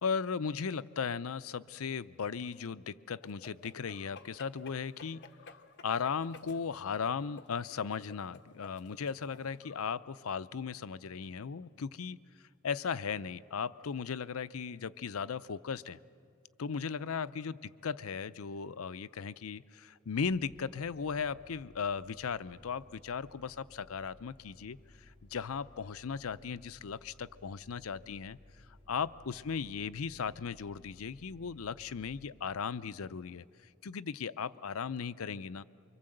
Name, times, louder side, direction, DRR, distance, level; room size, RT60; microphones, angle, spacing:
voice 1, 0.0-5.2 5.8-12.2 12.6-16.0 16.6-28.4 28.9-33.4 33.8-35.6, left 6 dB, 80° left, 15 dB, 0.6 m, -37 dB
sound 1, 3.2-9.9, left 4 dB, 55° left, 1.2 m, -54 dB
sound 2, 20.1-33.6, left 1 dB, 25° left, 6.1 m, -59 dB
25.5 x 24.5 x 7.8 m, 2.3 s
head